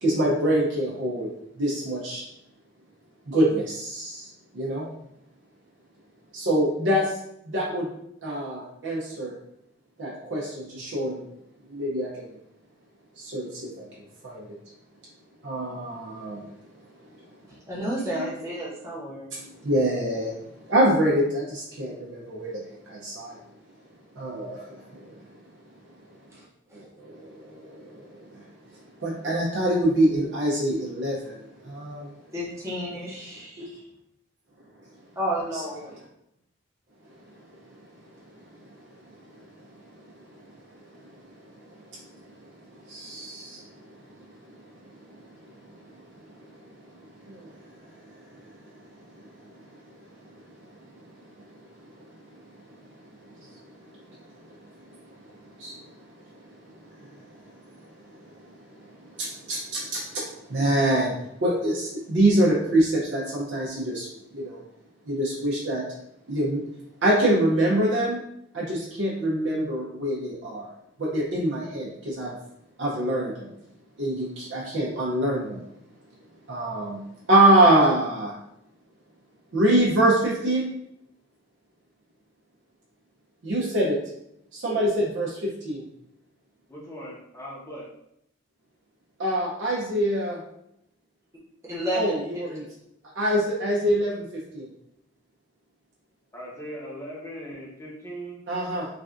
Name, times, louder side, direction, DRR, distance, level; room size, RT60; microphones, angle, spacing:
voice 1, 0.0-1.3 1.6-2.2 3.3-4.3 4.5-4.9 6.3-7.1 7.5-7.9 8.2-9.3 10.0-11.2 11.7-12.3 13.2-13.8 14.2-14.4 15.4-16.4 19.3-20.3 20.7-23.4 24.2-25.2 26.7-28.0 29.0-32.1 33.6-33.7 42.9-43.6 47.3-47.5 55.6-55.7 59.2-61.1 61.4-64.1 64.3-64.6 65.1-65.8 66.3-66.7 67.0-68.2 68.5-70.7 71.0-72.3 72.8-73.5 74.0-75.6 76.5-77.0 77.3-78.3 79.5-80.7 83.4-84.0 84.5-85.8 89.2-90.4 91.9-92.6 93.2-94.2 94.5-94.7 98.5-98.9, right 1 dB, 65° right, -5 dB, 0.6 m, -25 dB
voice 2, 17.5-19.3 32.3-33.8 35.1-36.0 91.6-92.4, equal, 15° right, -7 dB, 0.9 m, -31 dB
voice 3, 86.7-87.9 96.3-98.4, equal, 15° left, -6 dB, 0.8 m, -39 dB
3.3 x 2.4 x 2.4 m, 0.78 s
head